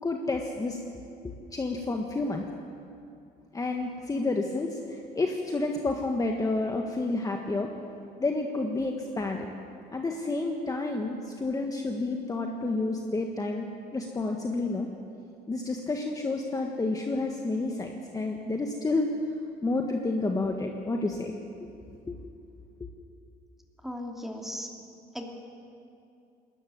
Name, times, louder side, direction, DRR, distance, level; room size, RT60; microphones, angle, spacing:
voice 1, 0.0-0.8 1.2-2.4 3.5-7.7 8.2-9.5 9.9-13.6 13.9-14.9 15.5-19.1 19.6-21.7 22.1-22.2, left 2 dB, 20° left, 2 dB, 1.5 m, -30 dB
voice 2, 23.8-24.7 25.1-25.3, left 1 dB, ahead, 1 dB, 2.7 m, -36 dB
21.0 x 13.5 x 9.6 m, 2.5 s
cardioid pair, 110°, 17 cm